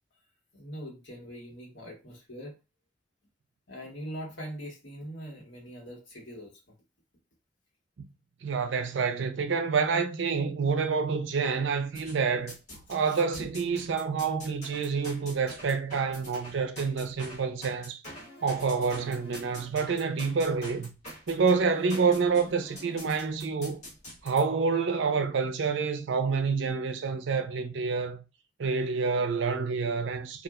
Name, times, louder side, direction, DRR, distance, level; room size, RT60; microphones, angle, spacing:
voice 1, 0.5-2.5 3.7-6.5 12.9-13.5, equal, 80° left, 1.2 m, -42 dB
voice 2, 8.4-12.5 12.9-18.0 18.4-20.9 21.3-23.8 24.2-28.2 28.6-30.4, right 5 dB, 80° right, 0.4 m, -28 dB
sound 1, 11.9-13.0 13.3-24.4, equal, 40° left, 1.4 m, -45 dB
2.8 x 2.4 x 2.3 m
head